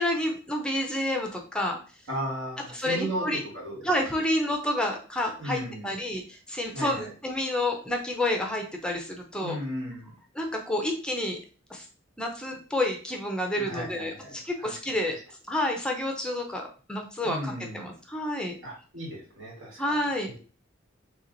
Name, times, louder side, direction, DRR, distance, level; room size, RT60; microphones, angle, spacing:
voice 1, 0.0-1.8 2.7-3.4 3.8-9.6 10.4-11.4 11.7-11.9 12.2-18.6 19.8-20.4, left 1 dB, 5° left, 2 dB, 0.5 m, -29 dB
voice 2, 2.1-3.8 5.4-5.9 6.7-7.1 9.4-10.1 13.5-15.0 17.2-17.9 18.6-20.4, right 1 dB, 80° right, -2 dB, 1.7 m, -36 dB
3.3 x 2.9 x 3.8 m, 0.38 s
head